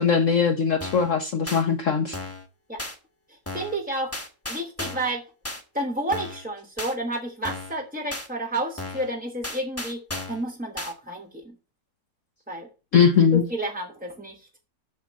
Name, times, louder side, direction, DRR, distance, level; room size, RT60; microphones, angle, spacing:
voice 1, 0.0-2.2 12.9-13.4, left 6 dB, 60° left, 0.9 m, -20 dB
sound 1, 0.8-1.1 1.5-1.6 2.1-2.5 2.8-3.0 3.5-3.8 4.1-5.1 5.4-5.6 6.1-6.4 6.8-6.9 7.4-7.8 8.1-8.3 8.8-9.1 9.4-10.4 10.8-10.9, left 2 dB, 10° left, 1.0 m, -34 dB
voice 2, 3.3-4.1 4.5-5.2 5.7-10.0 10.3-11.5 12.5-12.7 13.3-14.4, right 1 dB, 5° right, 0.7 m, -30 dB
7.3 x 5.7 x 7.2 m
omnidirectional pair, 1.9 m